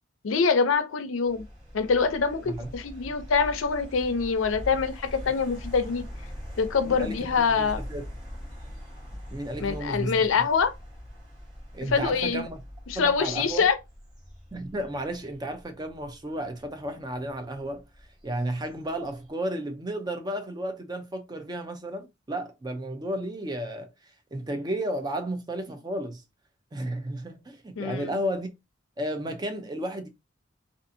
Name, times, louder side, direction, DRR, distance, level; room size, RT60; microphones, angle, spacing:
voice 1, 0.2-1.4 1.7-6.0 6.6-7.8 9.6-10.7 11.9-12.4 12.9-13.8 27.8-28.1, left 5 dB, 85° left, 0.5 m, -25 dB
sound 1, 1.3-19.3, equal, 35° right, 1.2 m, -43 dB
voice 2, 6.9-8.0 9.3-10.2 11.7-12.6 12.9-13.7 14.5-17.8 18.2-23.9 24.3-26.2 26.7-28.5 29.0-30.1, right 1 dB, 20° right, 0.5 m, -33 dB
2.6 x 2.4 x 2.5 m
head